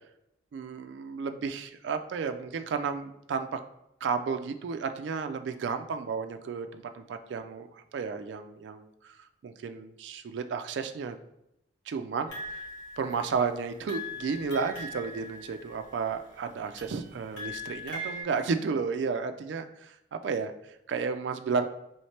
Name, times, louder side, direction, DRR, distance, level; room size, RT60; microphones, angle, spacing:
voice 1, 0.5-3.6 4.0-11.2 11.9-12.6 13.0-21.7, right 5 dB, 90° right, 8 dB, 0.3 m, -33 dB
sound 1, 12.3-13.5 13.9-16.1 16.8-18.2, left 1 dB, 80° left, 1.3 m, -40 dB
3.2 x 3.1 x 4.3 m, 0.82 s
head